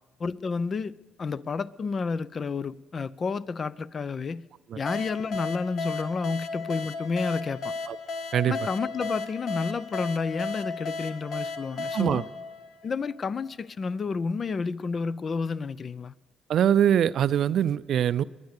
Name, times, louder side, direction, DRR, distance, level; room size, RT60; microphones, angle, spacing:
voice 1, 0.2-0.9 1.2-4.4 4.8-7.7 8.5-12.2 12.8-16.1, left 4 dB, 45° left, 0.5 m, -30 dB
sound 1, 4.9-13.3, left 3 dB, 65° left, 1.2 m, -35 dB
voice 2, 11.8-12.2 16.5-18.2, right 9 dB, 65° right, 0.4 m, -23 dB
20.5 x 10.5 x 6.6 m
supercardioid pair, 70°, 0 cm